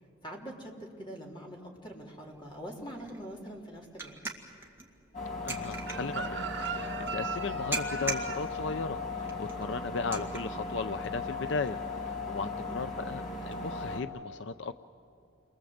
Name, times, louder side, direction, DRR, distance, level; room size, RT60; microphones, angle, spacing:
voice 1, 0.2-4.2 12.4-12.8, equal, 25° left, -2 dB, 3.5 m, -44 dB
sound 1, 2.2-13.5, right 3 dB, 10° right, 2.0 m, -44 dB
sound 2, 5.1-14.0, left 3 dB, 40° left, 3.1 m, -37 dB
voice 2, 5.4-14.8, left 4 dB, 70° left, 10 dB, 0.5 m, -36 dB
Chicken rooster, 5.9-10.8 11.1-11.4, right 6 dB, 65° right, 0.8 m, -40 dB
29.0 x 23.0 x 8.0 m, 2.7 s
head